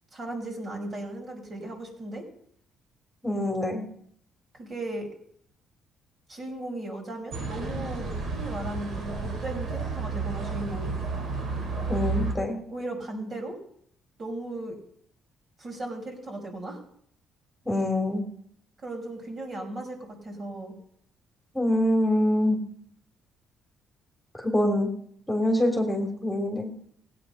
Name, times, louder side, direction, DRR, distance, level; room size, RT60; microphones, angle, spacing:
voice 1, 0.1-2.2 4.5-5.1 6.3-10.9 12.7-13.6 14.2-14.8 15.6-16.8 18.8-20.7, right 1 dB, 40° right, 1 dB, 5.6 m, -36 dB
voice 2, 3.2-3.9 11.9-12.6 17.6-18.3 21.5-22.6 24.4-24.9 25.3-26.7, left 1 dB, 10° left, 1 dB, 3.2 m, -25 dB
sound 1, 7.3-12.3, right 4 dB, 65° right, 3.5 m, -31 dB
16.5 x 9.3 x 5.7 m, 0.65 s
supercardioid pair, 65°, 0 cm